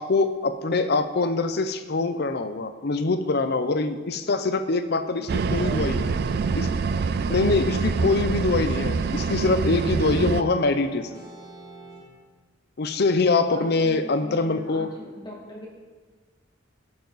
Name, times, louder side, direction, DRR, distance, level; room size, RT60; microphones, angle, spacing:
voice 1, 0.0-6.2 6.5-6.7 7.3-11.2 12.8-14.9, left 3 dB, 55° left, 10 dB, 0.6 m, -24 dB
voice 2, 5.2-5.9 13.5-15.7, equal, 25° left, -3 dB, 2.0 m, -42 dB
sound 1, 5.3-10.4, right 5 dB, 55° right, 0.3 m, -25 dB
sound 2, 6.9-12.0, right 1 dB, 20° right, 3.3 m, -45 dB
14.0 x 6.8 x 4.0 m, 1.4 s
head